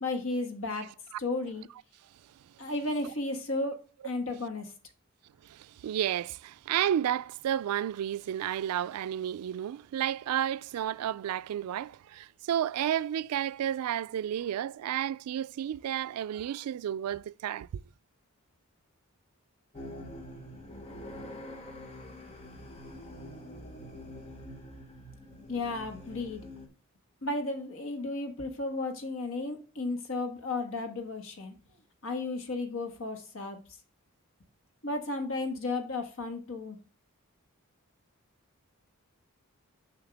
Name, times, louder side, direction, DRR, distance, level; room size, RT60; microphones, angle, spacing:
voice 1, 0.0-0.9 1.2-1.7 2.6-4.7 25.5-26.5 27.2-31.5 32.0-33.6 34.8-36.8, left 2 dB, 65° left, 1.5 m, -34 dB
voice 2, 0.8-1.2 2.6-3.1 5.4-17.8, right 10 dB, 85° right, 0.3 m, -32 dB
sound 1, 19.7-26.7, left 1 dB, 25° left, 1.0 m, -45 dB
7.2 x 5.6 x 3.4 m
head